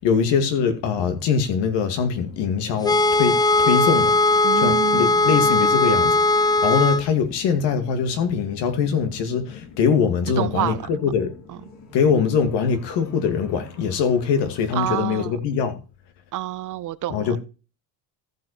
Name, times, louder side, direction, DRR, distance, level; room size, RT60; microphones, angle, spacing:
voice 1, 0.0-4.2 4.6-11.4 11.9-15.8 17.1-17.4, left 6 dB, 70° left, 2.4 m, -22 dB
sound 1, 2.2-14.9, left 4 dB, 40° left, 7.0 m, -45 dB
sound 2, 2.8-7.0, left 2 dB, 10° left, 0.4 m, -18 dB
voice 2, 4.4-5.3 10.4-10.8 11.5-11.6 14.7-15.4 16.3-17.4, right 15 dB, 45° right, 0.6 m, -28 dB
14.5 x 5.8 x 4.3 m
cardioid pair, 115°, 43 cm